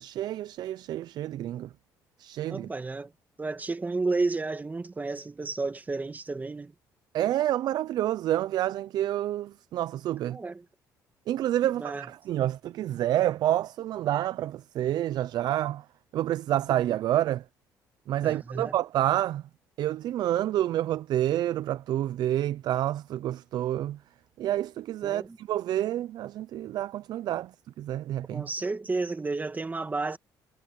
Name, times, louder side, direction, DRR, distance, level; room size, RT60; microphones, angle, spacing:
voice 1, 0.0-1.7 2.2-2.7 7.1-10.4 11.3-15.8 16.1-17.4 18.1-19.4 19.8-24.0 24.4-27.5 27.8-28.5, right 12 dB, 65° right, 0.5 m, -28 dB
voice 2, 2.5-3.1 3.4-6.7 10.3-10.7 11.6-12.1 16.5-16.6 18.2-18.8 25.0-25.4 28.3-30.2, right 3 dB, 20° right, 1.8 m, -32 dB
cardioid pair, 85°, 7 cm